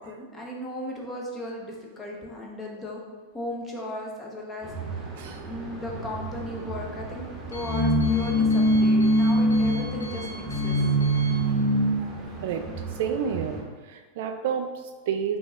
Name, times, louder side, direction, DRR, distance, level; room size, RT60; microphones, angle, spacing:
voice 1, 0.0-3.0 3.3-4.7 5.0-5.1 5.5-10.8, left 1 dB, 20° left, -1 dB, 1.0 m, -36 dB
sound 1, 4.6-13.6, equal, 15° right, 1.0 m, -25 dB
Alarm, 6.1-12.5, right 1 dB, 70° left, 1.0 m, -44 dB
voice 2, 12.0-12.6 12.9-13.6 13.8-15.4, right 7 dB, 50° right, 6 dB, 0.3 m, -30 dB
5.6 x 2.7 x 3.3 m, 1.4 s
figure-of-eight pair, 90°, 0 cm